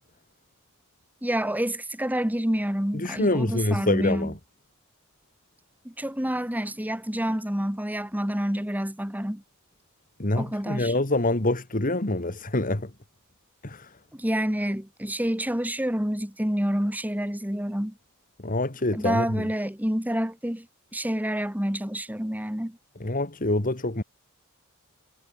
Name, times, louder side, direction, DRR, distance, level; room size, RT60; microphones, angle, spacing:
voice 1, 1.2-4.3 5.8-9.4 10.4-10.9 14.1-17.9 18.9-20.7 20.9-22.8, equal, 10° right, 2.3 m, -28 dB
voice 2, 2.9-4.3 10.2-12.9 13.6-13.9 18.4-19.5 23.0-24.0, left 2 dB, 40° left, 2.1 m, -26 dB
head